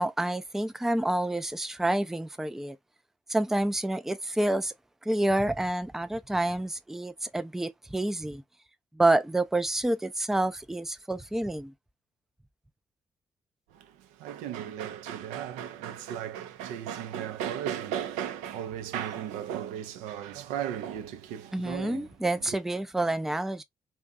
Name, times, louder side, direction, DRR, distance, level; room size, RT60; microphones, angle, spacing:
voice 1, 0.0-2.8 3.3-4.7 5.0-8.4 8.9-11.7 21.5-23.6, right 1 dB, 5° right, 0.3 m, -28 dB
voice 2, 13.7-22.1 22.4-22.6, right 10 dB, 75° right, 0.4 m, -36 dB
2.5 x 2.2 x 2.3 m
hypercardioid pair, 40°, 12 cm